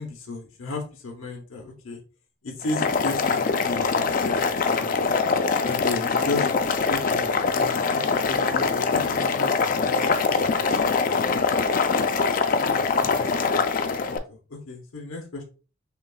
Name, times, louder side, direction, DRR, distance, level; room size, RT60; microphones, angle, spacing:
voice 1, 0.0-2.0 2.4-3.9 4.2-5.0 5.6-10.0 10.6-11.6 12.5-13.3 13.8-15.4, left 2 dB, 85° left, 0 dB, 0.8 m, -35 dB
Boiling, 2.6-14.2, left 4 dB, 40° left, 0.3 m, -23 dB
5.7 x 2.3 x 2.3 m, 0.34 s
head